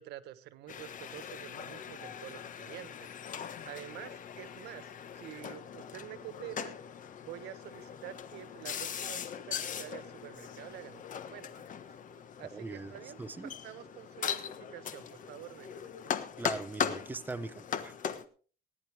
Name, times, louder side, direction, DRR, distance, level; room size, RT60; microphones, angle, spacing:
voice 1, 0.0-3.1 3.6-6.8 7.2-11.8 12.4-15.8, right 14 dB, 80° right, 14 dB, 1.2 m, -48 dB
sound 1, 0.7-18.2, left 8 dB, 50° left, 1.3 m, -40 dB
voice 2, 12.5-12.9 13.2-13.5 16.4-18.0, right 3 dB, 10° right, 12 dB, 0.6 m, -40 dB
19.0 x 10.5 x 3.5 m, 0.40 s
cardioid pair, 110°, 17 cm